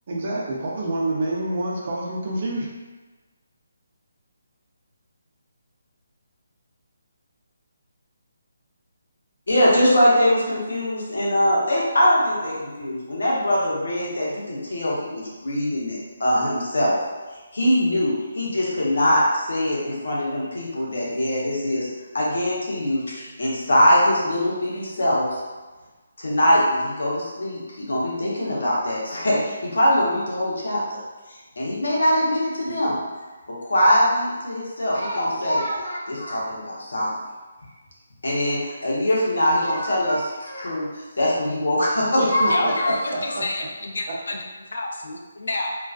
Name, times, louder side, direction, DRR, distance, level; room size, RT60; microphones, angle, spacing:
voice 1, 0.1-2.7 42.2-42.7 43.4-43.5 44.1-44.2, right 2 dB, 35° right, -3 dB, 0.4 m, -27 dB
voice 2, 9.5-17.0 17.5-21.9 22.1-25.4 26.2-31.0 31.6-33.0 33.6-37.1 38.2-40.9 41.2-42.9, equal, 80° left, -5 dB, 0.8 m, -22 dB
voice 3, 42.5-44.4 44.7-45.7, left 2 dB, 65° left, 1 dB, 0.4 m, -29 dB
2.3 x 2.3 x 2.3 m, 1.3 s
hypercardioid pair, 175°, 0 cm